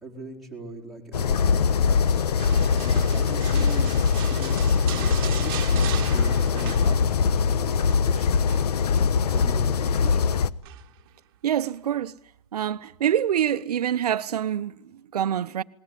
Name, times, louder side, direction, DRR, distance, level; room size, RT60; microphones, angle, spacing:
voice 1, 0.0-2.2 2.7-3.9 4.3-8.4 9.0-10.3, right 2 dB, ahead, 4.2 m, -40 dB
sound 1, 1.1-10.5, left 6 dB, 80° left, 1.1 m, -22 dB
sound 2, 2.4-7.4 7.6-8.0 8.5-9.5 10.6-11.1 11.6-11.7, right 14 dB, 40° right, 1.7 m, -39 dB
voice 2, 11.4-12.1 12.5-15.6, right 10 dB, 80° right, 0.9 m, -26 dB
29.0 x 20.0 x 9.9 m
hypercardioid pair, 165°, 20 cm